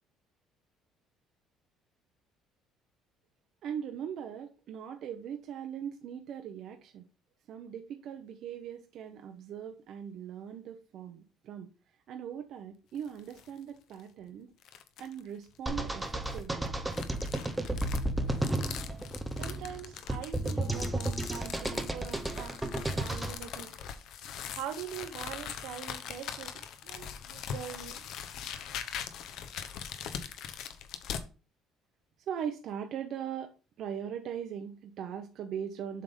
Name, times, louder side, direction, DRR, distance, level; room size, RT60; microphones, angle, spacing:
voice 1, 3.6-7.1 7.5-11.7 12.1-14.5 15.0-16.7 32.3-36.0, right 8 dB, 50° right, 0.7 m, -40 dB
sound 1, 12.9-13.5 13.9-14.0 14.6-15.2 16.0-31.3, left 8 dB, 55° left, 0.8 m, -42 dB
sound 2, 15.7-23.3, right 1 dB, 5° right, 0.6 m, -33 dB
voice 2, 19.4-23.7 24.5-28.0, right 9 dB, 70° right, 1.0 m, -43 dB
7.5 x 3.6 x 5.3 m
cardioid pair, 175°, 0 cm